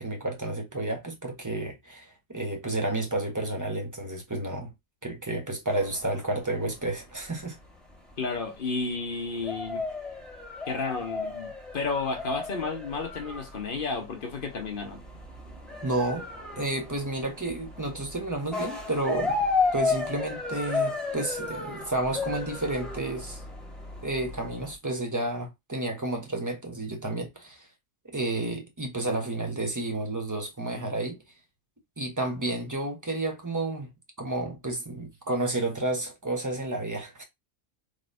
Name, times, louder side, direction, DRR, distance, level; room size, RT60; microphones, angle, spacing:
voice 1, 0.0-4.7 5.0-7.6 15.8-16.2 16.6-19.4 19.7-23.4 24.0-27.6 28.1-31.2 32.0-33.9 34.2-37.2, right 2 dB, 15° right, 0.9 m, -31 dB
sound 1, 5.7-24.8, left 3 dB, ahead, 1.4 m, -34 dB
voice 2, 8.2-9.9 10.7-15.0, left 4 dB, 45° left, 1.1 m, -32 dB
3.9 x 3.2 x 2.6 m
omnidirectional pair, 1.4 m